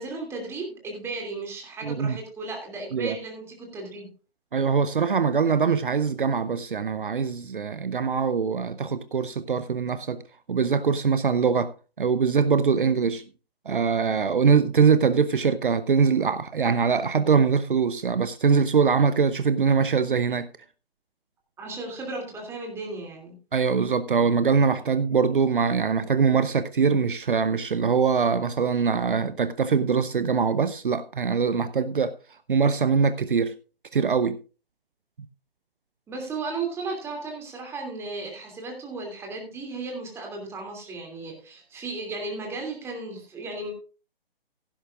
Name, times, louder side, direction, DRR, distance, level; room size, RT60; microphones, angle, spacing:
voice 1, 0.0-4.1 21.6-23.4 36.1-43.7, right 3 dB, 10° right, 2.7 m, -35 dB
voice 2, 1.8-2.2 2.9-3.2 4.5-10.2 10.5-11.7 12.0-13.2 13.7-20.5 23.5-32.1 32.5-33.5 33.9-34.4, right 5 dB, 55° right, 0.8 m, -23 dB
16.0 x 11.0 x 2.5 m
figure-of-eight pair, 140°, 30 cm